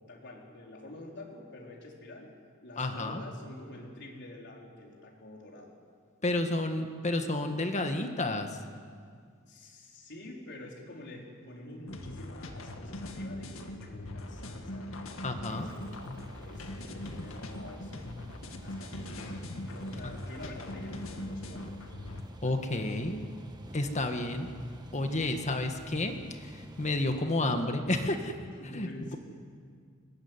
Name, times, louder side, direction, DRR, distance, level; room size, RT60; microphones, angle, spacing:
voice 1, 0.1-2.3 2.6-5.8 9.5-15.9 16.3-19.4 19.7-21.8 22.4-22.9 23.8-24.0 24.9-25.3 28.5-29.2, left 1 dB, 60° left, -1 dB, 4.4 m, -48 dB
voice 2, 2.8-3.2 6.2-8.6 15.2-15.7 22.4-23.2 23.7-24.5 24.9-28.3 28.7-29.2, left 2 dB, 35° left, 6 dB, 1.6 m, -31 dB
sound 1, 11.9-22.2, left 1 dB, 90° left, 2.1 m, -41 dB
sound 2, 15.5-27.2, equal, 20° right, 1.7 m, -49 dB
23.5 x 19.5 x 9.6 m, 2.1 s
head